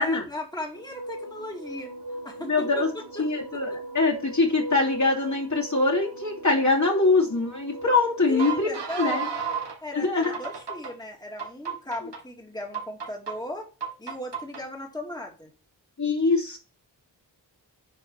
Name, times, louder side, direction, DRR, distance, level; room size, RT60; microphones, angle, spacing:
voice 1, 0.0-1.9 2.2-2.8 8.3-9.4 9.8-13.7 14.0-15.5, left 1 dB, 10° left, 1 dB, 2.6 m, -37 dB
sound 1, 0.7-9.8 10.2-10.9 11.4-12.2 12.7-13.3 13.8-14.6, right 4 dB, 85° right, 2.1 m, -35 dB
voice 2, 2.4-2.9 3.2-9.3 9.9-10.3 16.0-16.6, left 3 dB, 45° left, -1 dB, 3.1 m, -23 dB
8.7 x 5.0 x 7.4 m, 0.34 s
wide cardioid pair, 60°, 41 cm